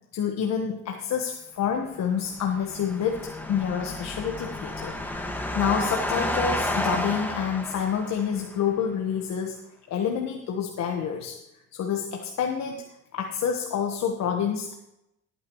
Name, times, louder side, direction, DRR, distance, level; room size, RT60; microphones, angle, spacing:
voice 1, 0.1-4.9 5.3-9.6 9.9-11.4 11.7-12.8 13.1-14.7, left 7 dB, 55° left, 2 dB, 1.4 m, -28 dB
sound 1, 2.2-8.5, left 1 dB, 5° left, 1.7 m, -31 dB
18.0 x 9.6 x 3.1 m, 0.86 s
cardioid pair, 100°, 32 cm